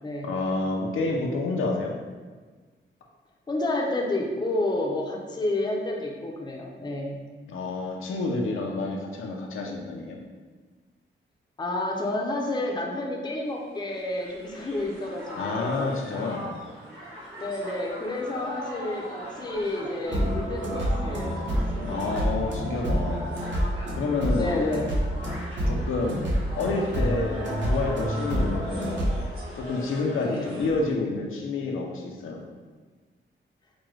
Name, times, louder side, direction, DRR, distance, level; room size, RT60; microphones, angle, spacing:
voice 1, 0.2-2.0 7.5-10.2 15.4-16.6 21.8-23.3 23.9-24.6 25.7-26.3 26.6-29.1 29.6-32.4, left 3 dB, 80° left, 0 dB, 0.6 m, -29 dB
voice 2, 3.5-7.2 11.6-16.0 17.4-21.3 21.7-22.0 24.4-24.9 30.2-30.6, left 2 dB, 20° left, -1 dB, 0.5 m, -30 dB
Crowd, 13.5-30.9, left 1 dB, 90° right, 1.0 m, -41 dB
sound 1, 20.0-29.1, equal, 65° right, 1.0 m, -28 dB
5.0 x 2.2 x 3.1 m, 1.4 s
wide cardioid pair, 125°, 21 cm